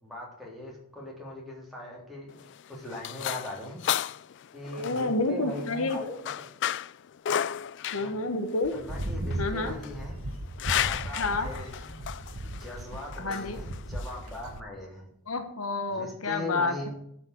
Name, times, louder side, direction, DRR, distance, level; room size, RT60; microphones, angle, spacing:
voice 1, 0.0-3.8 4.5-6.2 7.9-8.1 8.7-10.2 10.7-12.0 12.4-15.1 15.9-16.9, left 1 dB, ahead, -3 dB, 3.9 m, -40 dB
sound 1, 2.3-14.6, left 10 dB, 55° left, 0.4 m, -34 dB
voice 2, 4.8-6.0 7.9-8.7 9.4-9.8 11.2-11.5 13.2-13.6 15.3-16.9, left 3 dB, 75° left, 7 dB, 1.4 m, -29 dB
sound 2, 8.6-14.6, right 1 dB, 80° right, 1.1 m, -36 dB
12.5 x 5.9 x 8.0 m, 0.72 s
head